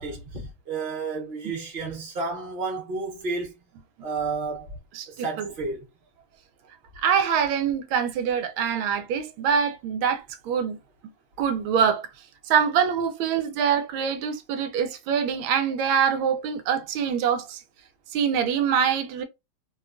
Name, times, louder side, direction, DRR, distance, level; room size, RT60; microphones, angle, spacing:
voice 1, 0.0-3.5 4.0-4.8 5.1-5.8, right 4 dB, 35° right, 1.0 m, -31 dB
voice 2, 4.9-5.5 7.0-10.8 11.4-12.1 12.5-17.6 18.1-19.2, right 7 dB, 90° right, 1.4 m, -24 dB
3.3 x 2.2 x 2.4 m
omnidirectional pair, 2.2 m